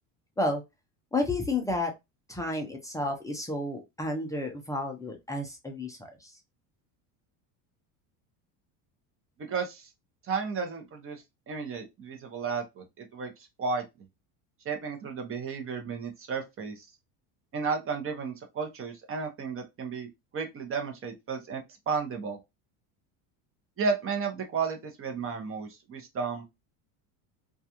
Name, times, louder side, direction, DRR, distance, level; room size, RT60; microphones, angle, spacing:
voice 1, 1.1-1.9 2.3-6.3, left 2 dB, 10° left, 0.4 m, -31 dB
voice 2, 9.4-9.9 10.2-13.3 13.6-13.8 14.6-16.9 17.5-20.1 20.3-22.4 23.8-26.5, right 5 dB, 30° right, 0.7 m, -33 dB
2.4 x 2.3 x 2.8 m
supercardioid pair, 115°, 44 cm